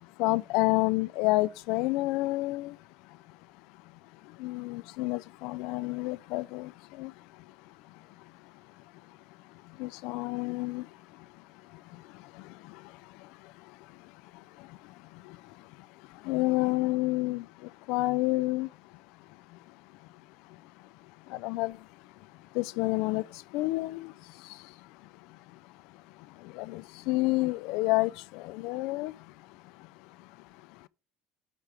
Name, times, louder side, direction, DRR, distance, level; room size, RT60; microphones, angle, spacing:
voice 1, 0.0-2.8 4.2-7.4 9.6-11.3 11.7-15.7 16.1-18.7 19.5-19.6 21.3-21.9 22.5-24.7 25.3-25.6 26.2-29.9 30.2-30.3 30.8-30.9, left 21 dB, 75° left, 0.3 m, -31 dB
8.3 x 4.4 x 4.9 m
supercardioid pair, 85°, 0 cm